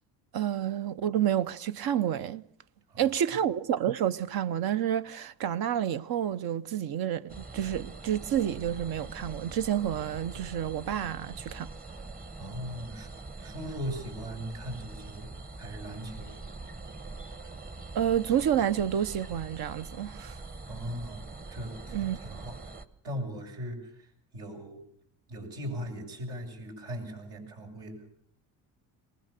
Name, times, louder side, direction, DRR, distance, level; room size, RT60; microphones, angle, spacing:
voice 1, 0.3-2.4 3.0-11.7 17.9-20.4 21.9-22.2, right 10 dB, 60° right, 1.0 m, -29 dB
voice 2, 2.9-3.3 12.4-13.1 13.4-15.3 15.6-16.3 20.7-22.6 23.0-24.8 25.3-28.1, equal, 75° right, 7.1 m, -39 dB
sound 1, 7.3-22.9, right 3 dB, 20° right, 1.1 m, -43 dB
23.0 x 20.0 x 6.7 m
cardioid pair, 100°, 41 cm